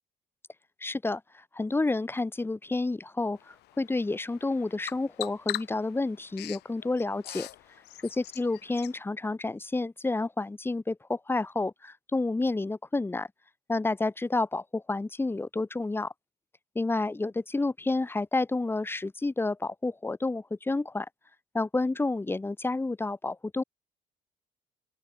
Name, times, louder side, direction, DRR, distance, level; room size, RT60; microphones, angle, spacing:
voice 1, 0.8-1.2 1.5-7.5 8.2-13.3 13.7-16.1 16.7-21.1 21.5-23.6, left 2 dB, 15° left, 1.1 m, -30 dB
Bird vocalization bird call bird song, 3.4-9.0, left 17 dB, 80° left, 4.1 m, -42 dB
open air
cardioid pair, 110°, 17 cm